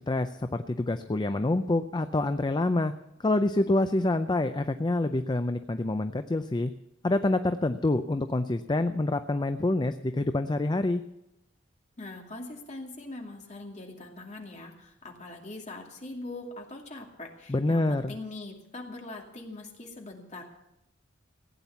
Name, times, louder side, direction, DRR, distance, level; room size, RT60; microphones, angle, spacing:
voice 1, 0.0-2.9 3.2-6.7 7.0-11.0 17.5-18.2, left 2 dB, 20° left, 9 dB, 0.5 m, -27 dB
voice 2, 12.0-20.4, left 2 dB, 35° left, 1 dB, 2.5 m, -42 dB
16.0 x 9.1 x 7.0 m, 0.88 s
head